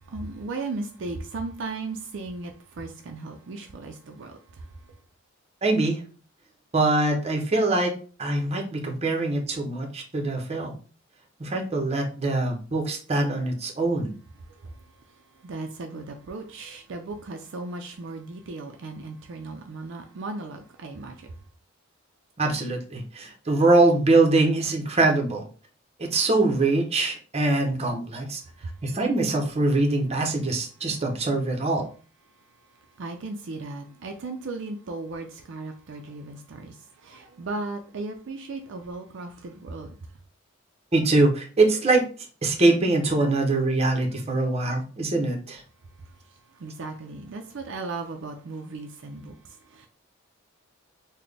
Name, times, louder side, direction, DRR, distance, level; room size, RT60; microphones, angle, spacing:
voice 1, 0.0-4.7 14.4-14.9 15.4-21.3 28.6-28.8 33.0-40.0 46.3-49.9, right 3 dB, 65° right, 0.4 m, -36 dB
voice 2, 5.6-6.0 6.7-7.9 8.2-10.7 11.4-14.1 22.4-25.4 26.0-28.4 28.8-31.9 40.9-42.0 42.4-45.6, right 2 dB, 35° right, 0.7 m, -23 dB
4.0 x 2.1 x 3.3 m
head